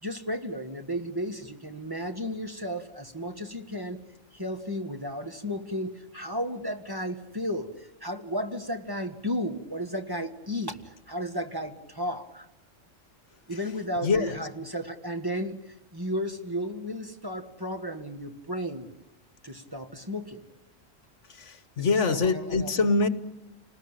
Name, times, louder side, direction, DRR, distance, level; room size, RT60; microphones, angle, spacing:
voice 1, 0.0-4.0 4.3-12.5 13.5-18.9 19.4-20.4 21.8-22.9, equal, 15° right, 1.7 m, -34 dB
voice 2, 14.0-14.4 21.3-23.1, left 4 dB, 70° left, 1.5 m, -25 dB
29.5 x 20.0 x 9.0 m
omnidirectional pair, 1.3 m